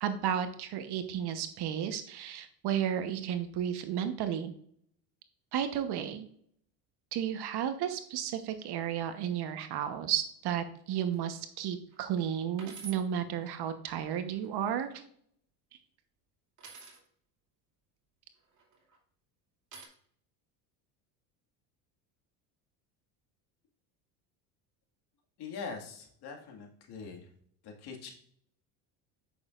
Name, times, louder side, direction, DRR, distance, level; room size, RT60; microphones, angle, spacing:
voice 1, 0.0-4.5 5.5-6.3 7.1-14.9, right 9 dB, 55° right, 9 dB, 1.1 m, -33 dB
sound 1, 11.1-11.4 11.9-12.0 12.6-13.0 14.2-14.8 16.6-17.0 18.5-19.0 19.7-19.9, right 6 dB, 40° right, 2.5 m, -48 dB
voice 2, 25.4-27.2 27.6-28.1, left 5 dB, 55° left, 2 dB, 2.1 m, -42 dB
8.4 x 6.4 x 2.5 m, 0.63 s
supercardioid pair, 95°, 47 cm